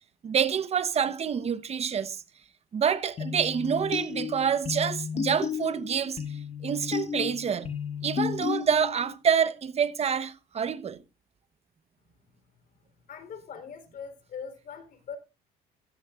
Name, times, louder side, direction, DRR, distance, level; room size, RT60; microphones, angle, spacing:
voice 1, 0.2-2.2 2.7-6.2 6.6-7.7 8.0-11.0, right 7 dB, 40° right, 1.1 m, -27 dB
sound 1, 3.2-9.1, left 7 dB, 40° left, 1.5 m, -33 dB
voice 2, 13.1-15.2, left 6 dB, 55° left, 4.0 m, -41 dB
14.5 x 13.5 x 2.5 m
cardioid pair, 110°, 17 cm